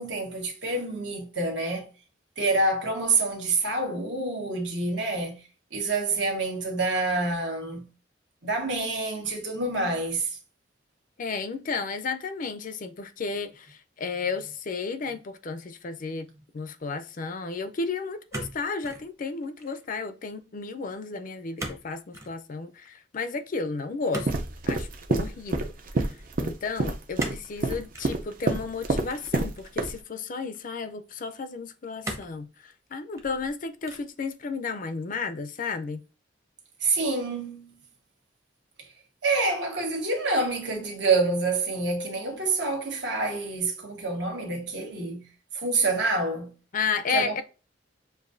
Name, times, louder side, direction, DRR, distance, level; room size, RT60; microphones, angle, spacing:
voice 1, 0.0-1.9 2.4-5.4 5.7-7.9 8.4-10.3 36.8-37.8 39.2-45.2 45.5-46.5 47.1-47.4, right 3 dB, 70° right, 1.4 m, -27 dB
voice 2, 11.2-24.3 24.7-25.7 26.4-36.0 46.7-47.4, left 4 dB, 45° left, 0.5 m, -33 dB
sound 1, 18.3-19.1 19.4-19.9 21.6-21.9 22.1-22.4 24.1-24.9 27.2-27.5 27.9-28.1 29.1-29.8 30.5-30.6 32.0-32.4 33.0-33.5 33.8-34.2, right 1 dB, 15° right, 0.7 m, -37 dB
sound 2, 24.3-29.5 29.8-29.9, right 2 dB, 50° right, 0.6 m, -27 dB
6.8 x 2.6 x 2.6 m
head